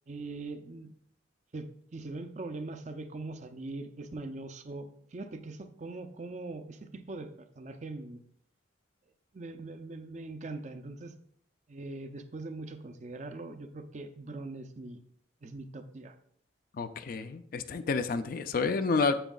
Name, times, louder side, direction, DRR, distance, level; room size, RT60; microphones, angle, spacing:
voice 1, 0.1-0.9 1.5-7.3 7.6-8.2 9.3-11.1 11.7-15.0 15.4-16.2, right 2 dB, 40° right, 8 dB, 0.5 m, -41 dB
voice 2, 16.8-19.1, left 4 dB, 50° left, 10 dB, 0.4 m, -29 dB
8.9 x 7.2 x 2.3 m, 0.67 s
head